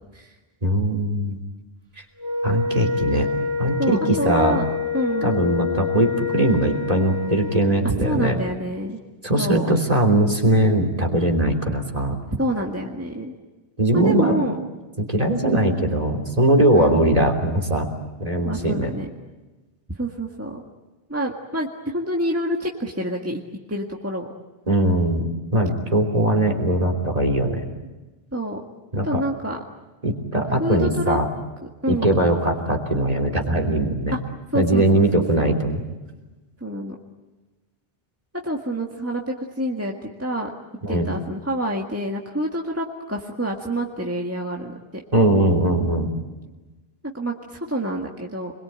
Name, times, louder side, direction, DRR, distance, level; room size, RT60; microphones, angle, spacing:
voice 1, 0.6-1.4 2.4-3.3 3.6-4.6 5.2-8.4 9.2-12.2 13.8-14.4 15.0-17.9 18.2-18.9 24.7-27.7 28.9-29.2 30.0-31.3 31.9-34.2 34.5-35.8 40.8-41.1 45.1-46.1, right 1 dB, 35° right, 2 dB, 3.3 m, -20 dB
Wind instrument woodwind instrument, 2.2-7.8, left 5 dB, 75° right, 2.6 m, -27 dB
voice 2, 3.8-4.7 4.9-5.3 7.8-9.0 9.4-9.7 12.4-13.3 13.9-14.6 16.7-17.1 18.4-19.1 20.0-20.6 21.1-23.4 23.7-24.3 28.3-28.6 29.0-29.6 30.6-31.2 31.8-32.1 34.1-34.2 34.5-35.5 36.6-37.0 38.4-40.5 40.9-44.7 47.1-48.5, equal, 15° right, 0 dB, 1.8 m, -27 dB
28.0 x 22.0 x 8.8 m, 1.2 s
omnidirectional pair, 1.0 m